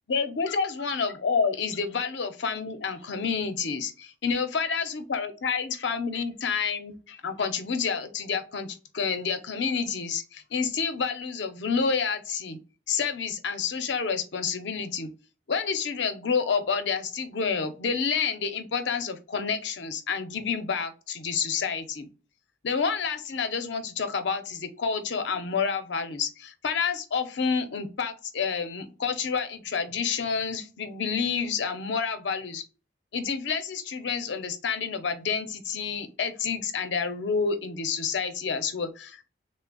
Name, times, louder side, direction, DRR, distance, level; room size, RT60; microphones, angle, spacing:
voice 1, 0.1-12.6 12.9-15.1 15.5-22.1 22.6-32.6 33.1-39.2, left 5 dB, 75° left, 8 dB, 0.6 m, -29 dB
3.3 x 2.0 x 3.8 m, 0.33 s
head